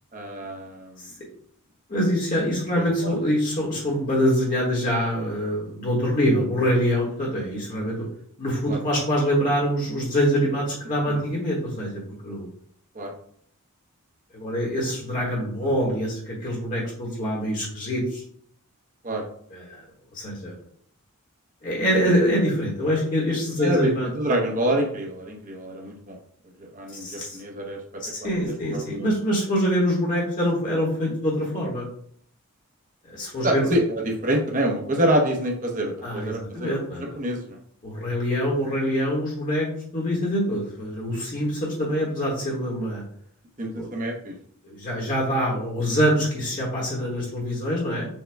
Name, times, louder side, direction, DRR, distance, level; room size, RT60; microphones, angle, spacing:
voice 1, 0.1-1.0 2.8-3.2 8.7-8.8 11.1-11.2 12.9-13.1 15.6-15.7 19.0-19.2 23.6-23.9 24.2-26.2 26.6-27.8 28.2-28.3 28.7-29.1 33.4-37.6 43.6-44.3, right 1 dB, 35° right, 2 dB, 0.8 m, -27 dB
voice 2, 1.9-8.1 8.4-12.4 14.3-18.2 19.5-19.8 20.1-20.5 21.6-24.1 27.0-27.4 28.0-31.8 33.1-33.7 36.0-37.0 37.8-39.7 39.9-43.0 43.7-43.9 44.6-48.1, equal, 35° left, -3 dB, 1.2 m, -25 dB
6.4 x 2.2 x 3.4 m, 0.64 s
head